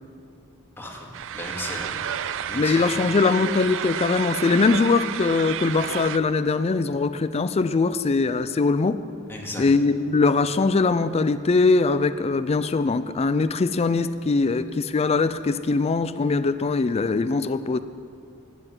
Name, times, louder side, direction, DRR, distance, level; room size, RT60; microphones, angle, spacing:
voice 1, 0.8-1.9 2.5-2.9 9.3-9.6, left 1 dB, 10° left, -2 dB, 2.3 m, -35 dB
sound 1, 1.1-6.2, right 9 dB, 60° right, 0.5 m, -31 dB
voice 2, 2.5-9.0 9.6-17.8, left 4 dB, 30° left, 12 dB, 0.4 m, -22 dB
12.0 x 10.0 x 9.4 m, 2.5 s
head